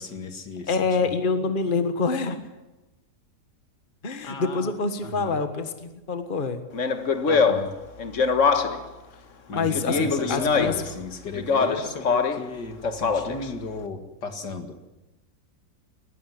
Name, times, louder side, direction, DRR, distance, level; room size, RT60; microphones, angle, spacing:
voice 1, 0.0-1.1 4.2-4.7 5.0-5.4 7.3-7.7 9.5-14.8, left 3 dB, 75° left, 7 dB, 2.7 m, -35 dB
voice 2, 0.7-2.4 4.0-6.6 9.5-10.8, left 4 dB, 30° left, 9 dB, 1.6 m, -26 dB
Speech, 6.7-8.9 9.7-10.9 11.3-12.5 12.8-13.5, left 5 dB, 50° left, 1.7 m, -23 dB
19.5 x 15.5 x 9.7 m, 1.1 s
omnidirectional pair, 1.8 m